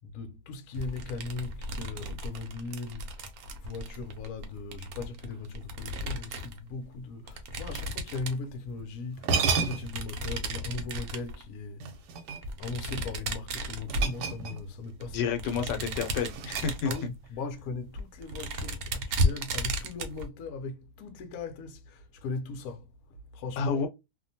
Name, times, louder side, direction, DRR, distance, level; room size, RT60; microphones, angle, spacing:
voice 1, 0.0-3.2 3.6-11.8 12.6-15.3 16.9-22.9 23.3-23.8, left 3 dB, 65° left, 1.0 m, -38 dB
sound 1, 0.7-6.6 7.3-8.8 9.8-11.5 12.3-14.6 15.0-17.2 17.6-17.7 17.9-20.3, equal, 70° right, 1.0 m, -34 dB
sound 2, 8.8-8.9 9.2-10.1 11.8-12.7 13.9-14.8 15.1-15.3 15.8-17.2, right 5 dB, 90° right, 1.2 m, -32 dB
voice 2, 15.1-16.9 23.6-23.9, left 6 dB, 85° left, 1.2 m, -30 dB
2.9 x 2.1 x 2.6 m
omnidirectional pair, 1.8 m